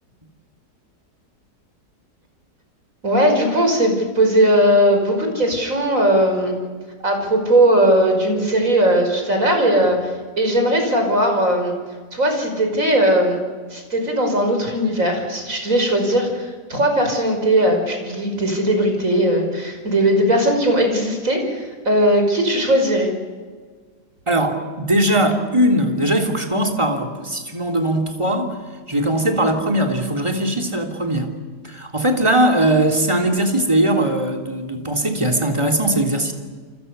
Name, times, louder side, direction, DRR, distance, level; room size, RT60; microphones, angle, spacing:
voice 1, 3.0-6.6 7.0-11.7 12.1-13.4 13.7-23.1, right 1 dB, 50° right, 4 dB, 5.9 m, -18 dB
voice 2, 24.3-28.5 28.9-31.3 31.6-36.3, right 1 dB, 15° right, 4 dB, 3.3 m, -20 dB
29.5 x 25.5 x 6.9 m, 1.5 s
omnidirectional pair, 1.8 m